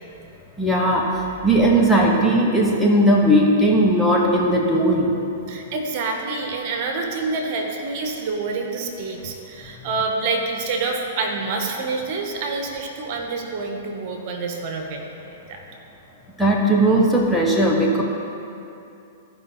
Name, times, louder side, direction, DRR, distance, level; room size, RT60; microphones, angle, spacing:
voice 1, 0.6-1.1 1.4-5.1 16.4-18.0, right 1 dB, ahead, -3 dB, 1.2 m, -17 dB
voice 2, 5.5-15.0 15.2-15.6, right 3 dB, 45° right, 2 dB, 1.3 m, -27 dB
15.0 x 5.3 x 3.9 m, 2.7 s
hypercardioid pair, 110°, 0 cm